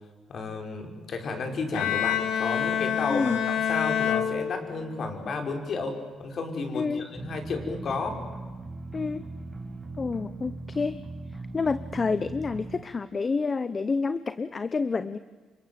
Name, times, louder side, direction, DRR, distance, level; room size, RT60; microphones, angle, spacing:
voice 1, 0.3-8.2, left 3 dB, 55° left, 4 dB, 5.3 m, -32 dB
Bowed string instrument, 1.7-5.1, left 9 dB, 90° left, 2.4 m, -27 dB
voice 2, 3.1-3.4 6.7-7.1 8.9-9.2 10.0-11.0 11.5-15.2, left 4 dB, 35° left, 13 dB, 0.9 m, -28 dB
sound 1, 7.1-12.8, right 3 dB, 25° right, 6.0 m, -39 dB
29.0 x 25.5 x 7.7 m, 1.4 s
cardioid pair, 90°, 0 cm